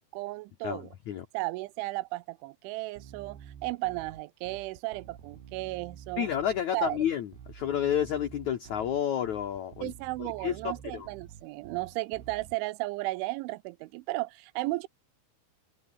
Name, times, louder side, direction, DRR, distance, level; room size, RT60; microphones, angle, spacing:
voice 1, 0.1-0.9 1.3-6.3 6.7-7.0 9.8-14.9, right 21 dB, 85° right, 3.1 m, -34 dB
voice 2, 0.6-1.2 6.2-9.9 10.2-11.1, left 9 dB, 85° left, 1.6 m, -30 dB
Bass guitar, 3.0-12.6, right 8 dB, 65° right, 5.0 m, -49 dB
omnidirectional pair, 5.4 m